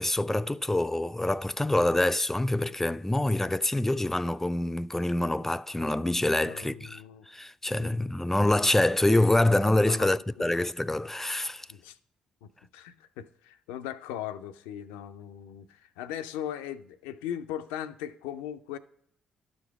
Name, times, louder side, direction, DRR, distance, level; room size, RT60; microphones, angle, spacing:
voice 1, 0.0-11.7, left 1 dB, 10° left, 0.3 m, -26 dB
voice 2, 6.4-7.3 7.8-8.1 9.8-10.1 10.4-10.5 11.7-12.0 12.4-18.8, left 10 dB, 85° left, 0.4 m, -39 dB
12.0 x 5.2 x 4.7 m
hypercardioid pair, 50°, 3 cm